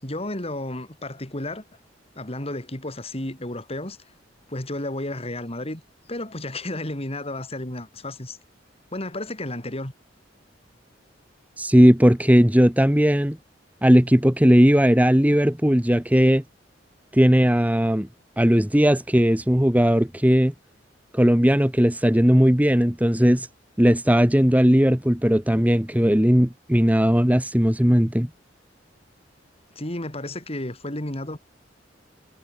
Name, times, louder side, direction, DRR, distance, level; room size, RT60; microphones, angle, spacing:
voice 1, 0.0-1.6 2.2-4.0 4.5-5.8 6.1-8.4 8.9-9.9 29.8-31.4, left 1 dB, 35° left, 4.4 m, -32 dB
voice 2, 11.6-13.4 13.8-16.4 17.1-18.1 18.4-20.5 21.1-23.5 23.8-28.3, equal, 10° right, 1.3 m, -18 dB
head